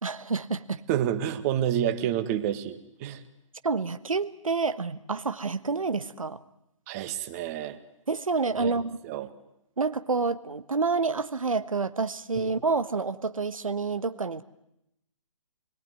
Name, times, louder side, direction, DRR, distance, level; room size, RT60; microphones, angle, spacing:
voice 1, 0.0-0.8 3.6-6.4 8.1-9.0 9.8-14.4, right 4 dB, 80° right, 11 dB, 1.3 m, -28 dB
voice 2, 0.9-3.2 6.9-7.8 8.6-8.8 9.0-9.3 12.4-12.6, right 10 dB, 30° right, 8 dB, 1.9 m, -29 dB
26.5 x 21.5 x 9.6 m, 0.82 s
figure-of-eight pair, 140°, 17 cm